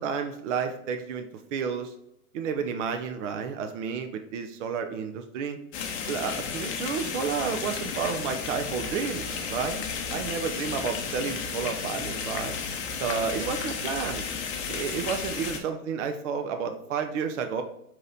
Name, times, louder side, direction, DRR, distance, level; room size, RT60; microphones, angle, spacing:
voice 1, 0.0-1.9 2.3-5.6 6.1-9.8 10.1-12.6 13.0-14.2 14.7-17.6, right 6 dB, 55° right, 6 dB, 0.6 m, -31 dB
sound 1, 5.7-15.6, left 6 dB, 25° left, 0.6 m, -33 dB
4.7 x 2.9 x 3.8 m, 0.79 s
hypercardioid pair, 110°, 44 cm